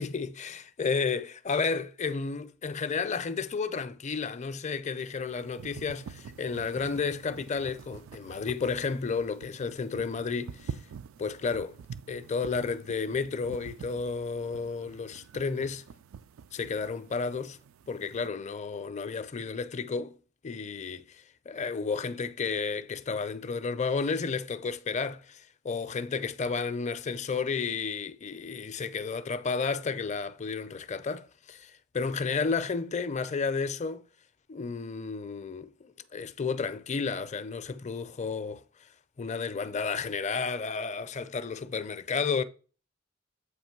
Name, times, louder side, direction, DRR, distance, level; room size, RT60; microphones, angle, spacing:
voice 1, 0.0-10.8 11.2-11.8 12.1-15.8 16.5-17.6 17.9-20.2 20.4-34.1 34.5-38.9 39.2-42.4, left 5 dB, 35° left, 0.5 m, -32 dB
sound 1, 5.0-18.3, right 7 dB, 75° right, 0.4 m, -47 dB
8.0 x 3.0 x 5.8 m
head